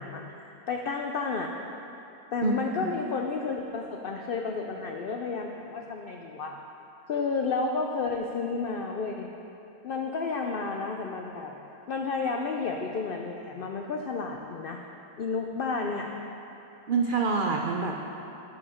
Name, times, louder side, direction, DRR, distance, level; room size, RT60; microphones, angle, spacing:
voice 1, 0.0-1.6 2.3-6.5 7.1-9.3 9.8-11.6 11.9-14.8 15.2-16.1, left 4 dB, 85° left, 2 dB, 0.4 m, -31 dB
voice 2, 2.4-2.8 16.9-18.0, right 4 dB, 80° right, 1 dB, 0.4 m, -27 dB
9.2 x 7.6 x 4.3 m, 2.9 s
omnidirectional pair, 1.5 m